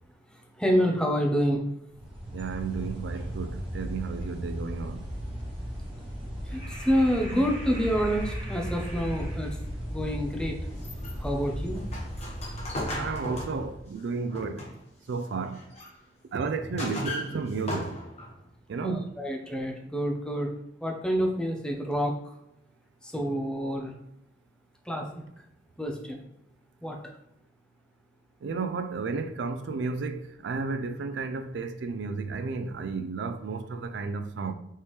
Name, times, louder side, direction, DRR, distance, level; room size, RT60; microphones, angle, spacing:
voice 1, 0.6-1.6 6.9-9.5 9.9-10.5 11.2-11.8 18.8-20.5 20.8-22.1 23.1-23.9 24.9-25.1 25.8-26.2 26.8-26.9, equal, 5° left, 0.6 m, -27 dB
sound 1, 1.9-13.8, equal, 30° right, 1.1 m, -36 dB
voice 2, 2.3-5.1 13.0-14.7 15.1-15.6 16.3-18.0 18.7-19.1 28.4-34.5, right 4 dB, 75° right, 0.4 m, -32 dB
sound 2, 10.7-15.0 15.4-15.9 16.4-18.4, left 1 dB, 35° left, 1.1 m, -37 dB
4.3 x 3.4 x 3.1 m
head